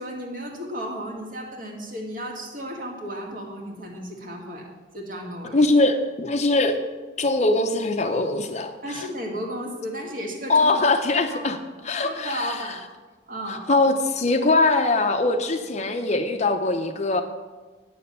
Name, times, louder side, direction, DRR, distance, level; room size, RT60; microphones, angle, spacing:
voice 1, 0.0-4.6 4.9-5.6 8.8-10.8 11.3-11.5 12.0-12.8 13.3-13.7, equal, 50° right, 0 dB, 2.0 m, -34 dB
voice 2, 5.5-6.8 7.2-9.1 10.5-11.6 11.8-12.6 13.5-17.2, left 2 dB, 40° left, 7 dB, 0.7 m, -22 dB
9.3 x 6.8 x 6.8 m, 1.3 s
head